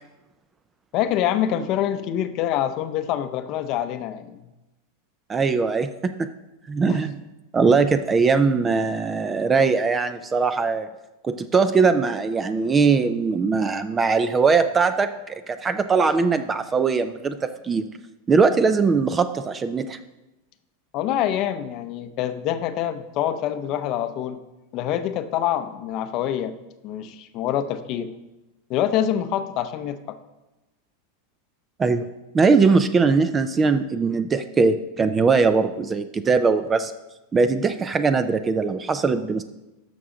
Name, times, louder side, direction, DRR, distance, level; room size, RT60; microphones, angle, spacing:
voice 1, 0.9-4.4 6.8-7.0 20.9-24.4 24.7-26.5 26.8-28.1 28.7-30.2, left 10 dB, 35° left, 11 dB, 0.6 m, -26 dB
voice 2, 5.3-6.3 6.7-7.2 7.5-10.9 11.2-17.9 18.3-20.0 31.8-32.1 32.3-36.9 37.3-39.4, right 4 dB, 15° right, 11 dB, 0.3 m, -21 dB
12.5 x 6.1 x 3.8 m, 1.0 s
supercardioid pair, 165°, 0 cm